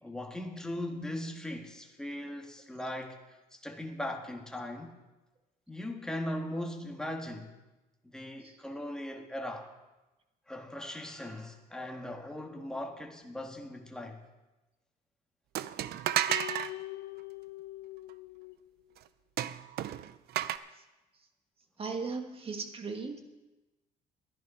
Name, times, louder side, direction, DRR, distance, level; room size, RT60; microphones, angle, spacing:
voice 1, 0.0-3.2 3.5-4.9 5.7-7.5 8.0-9.7 10.5-14.2, left 1 dB, 5° left, 2 dB, 1.6 m, -39 dB
sound 1, 15.5-16.7 19.4-20.6, right 12 dB, 70° right, 0.6 m, -32 dB
sound 2, 16.3-18.8, left 17 dB, 80° left, 0.5 m, -42 dB
voice 2, 21.8-23.2, right 4 dB, 35° right, 5 dB, 1.7 m, -37 dB
12.0 x 11.0 x 5.5 m, 1.1 s
cardioid pair, 110°, 17 cm